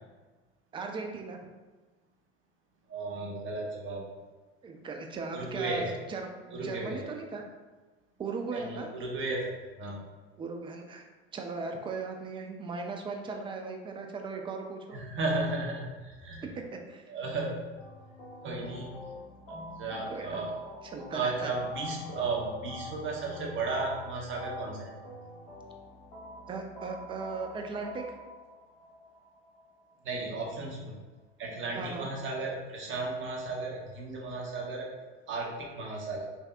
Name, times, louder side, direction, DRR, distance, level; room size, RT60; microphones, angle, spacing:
voice 1, 0.7-1.4 4.6-7.4 8.2-8.9 10.4-11.0 11.3-15.0 16.4-17.1 20.1-20.4 20.8-21.5 26.5-28.0 31.7-32.1, right 4 dB, 15° right, 3 dB, 0.3 m, -38 dB
voice 2, 2.9-4.0 5.3-5.9 6.5-7.1 8.5-10.1 14.9-16.4 17.1-17.7 18.4-19.0 19.5-20.5 21.1-24.9 30.0-30.9 31.4-34.9 35.3-36.2, right 3 dB, 35° right, -2 dB, 0.9 m, -34 dB
sound 1, 17.8-30.7, left 1 dB, 65° left, 1.0 m, -45 dB
3.3 x 2.7 x 2.3 m, 1.3 s
hypercardioid pair, 80°, 33 cm